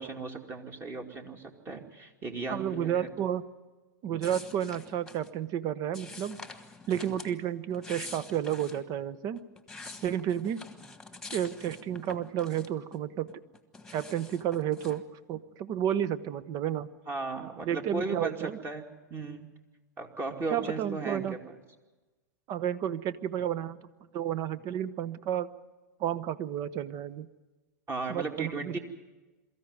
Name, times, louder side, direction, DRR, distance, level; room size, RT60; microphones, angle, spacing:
voice 1, 0.0-3.1 17.1-18.8 19.1-19.5 20.0-21.2 27.9-28.8, right 3 dB, 25° right, 4 dB, 2.5 m, -36 dB
voice 2, 2.5-3.4 4.0-6.4 6.9-9.4 10.0-10.6 11.3-13.3 13.9-16.9 17.6-18.6 20.5-21.4 22.5-23.8 24.1-25.5 26.0-27.3 28.1-28.8, right 10 dB, 40° right, 16 dB, 1.0 m, -31 dB
sound 1, 4.2-5.3 5.9-7.3 7.7-8.8 9.4-13.0 13.3-15.0, left 3 dB, 5° left, 1.7 m, -46 dB
23.0 x 14.5 x 9.6 m, 1.2 s
hypercardioid pair, 115°, 10 cm